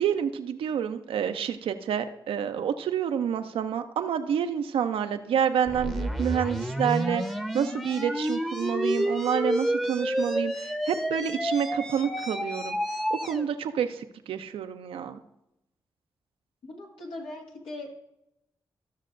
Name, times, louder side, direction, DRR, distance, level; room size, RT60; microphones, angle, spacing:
voice 1, 0.0-12.8 13.1-15.2, right 8 dB, 85° right, 8 dB, 0.6 m, -28 dB
sound 1, 5.7-13.4, equal, 5° left, 0.9 m, -30 dB
voice 2, 16.6-17.9, left 2 dB, 85° left, -2 dB, 2.0 m, -40 dB
14.0 x 6.4 x 2.6 m, 0.86 s
supercardioid pair, 45°, 9 cm